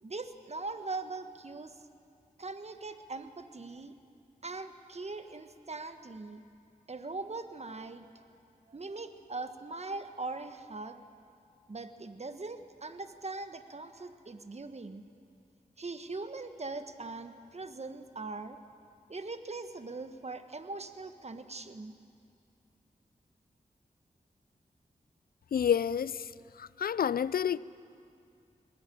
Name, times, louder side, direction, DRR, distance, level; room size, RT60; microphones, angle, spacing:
voice 1, 0.0-1.8 2.4-3.9 4.4-6.4 6.9-8.1 8.7-11.0 11.7-15.0 15.8-18.6 19.1-22.0, right 3 dB, 45° right, 1.3 m, -41 dB
voice 2, 25.5-26.3 26.6-27.6, left 8 dB, 75° left, 0.4 m, -29 dB
20.5 x 14.0 x 9.2 m
cardioid pair, 40°, 16 cm